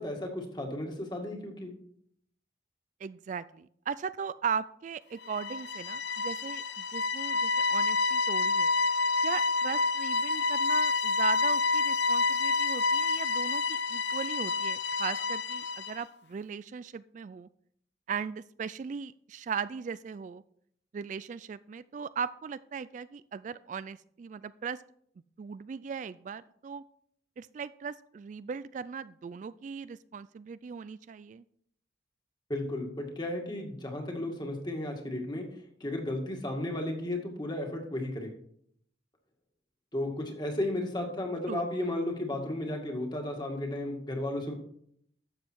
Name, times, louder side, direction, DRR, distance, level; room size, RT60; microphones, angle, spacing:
voice 1, 0.0-1.7 32.5-35.5 35.8-38.3 39.9-44.5, left 1 dB, 25° left, 2 dB, 2.1 m, -34 dB
voice 2, 3.0-8.7 9.2-17.5 18.1-20.4 20.9-24.8 25.4-26.8 27.4-31.4 41.5-41.7, right 6 dB, 45° right, 16 dB, 0.3 m, -38 dB
sound 1, 5.2-16.0, left 3 dB, 75° left, 0.7 m, -28 dB
12.0 x 7.5 x 4.6 m, 0.67 s
head